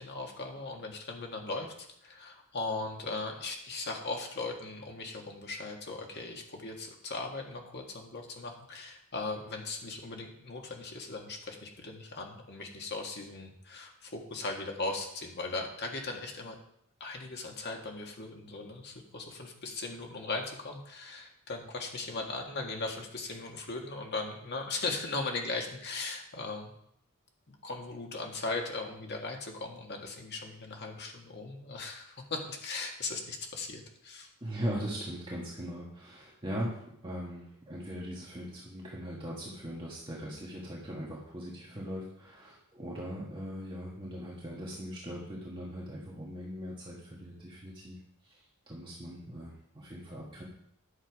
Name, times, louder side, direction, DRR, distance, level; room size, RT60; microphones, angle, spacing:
voice 1, 0.0-16.6 17.0-26.7 27.5-34.3, left 3 dB, 50° left, 1 dB, 1.7 m, -38 dB
voice 2, 34.4-48.0 48.2-50.4, equal, 25° right, -5 dB, 1.6 m, -40 dB
10.0 x 7.0 x 4.8 m, 0.71 s
head